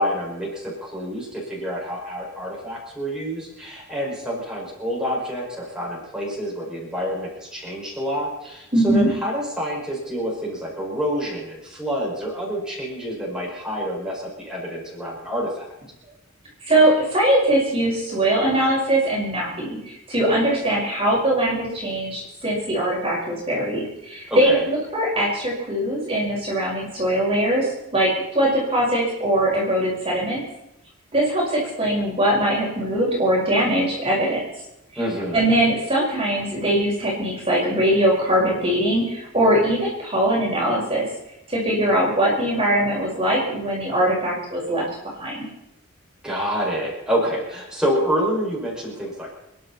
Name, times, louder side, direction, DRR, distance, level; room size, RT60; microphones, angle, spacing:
voice 1, 0.0-15.7 24.3-24.7 35.0-35.4 46.2-49.3, equal, 5° right, -5 dB, 5.8 m, -27 dB
voice 2, 8.7-9.1 16.6-30.4 31.1-34.4 35.3-41.0 41.5-44.8 45.2-45.4, right 1 dB, 25° right, -5 dB, 5.1 m, -21 dB
28.5 x 11.0 x 4.2 m, 0.87 s
head